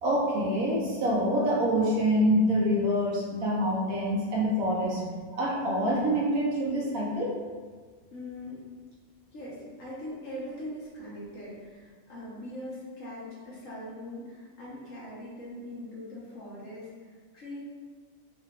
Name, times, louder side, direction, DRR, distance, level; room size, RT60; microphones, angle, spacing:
voice 1, 0.0-5.0 5.4-7.3, equal, 70° right, -4 dB, 1.0 m, -26 dB
voice 2, 8.1-8.6 9.3-17.6, left 1 dB, 60° left, -7 dB, 1.2 m, -41 dB
3.7 x 2.4 x 2.3 m, 1.5 s
omnidirectional pair, 1.6 m